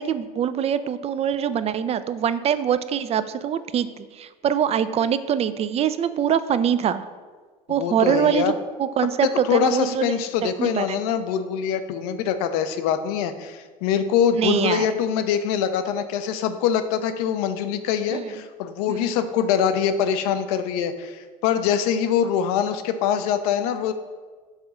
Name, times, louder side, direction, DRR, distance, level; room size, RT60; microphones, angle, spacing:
voice 1, 0.0-7.0 7.7-8.5 8.8-10.1 10.4-11.0 14.4-14.9 18.1-18.3 18.9-19.1, right 8 dB, 30° right, 13 dB, 0.4 m, -24 dB
voice 2, 7.8-8.5 9.5-23.9, left 8 dB, 75° left, 10 dB, 0.5 m, -24 dB
4.9 x 3.6 x 5.3 m, 1.4 s
hypercardioid pair, 80°, 20 cm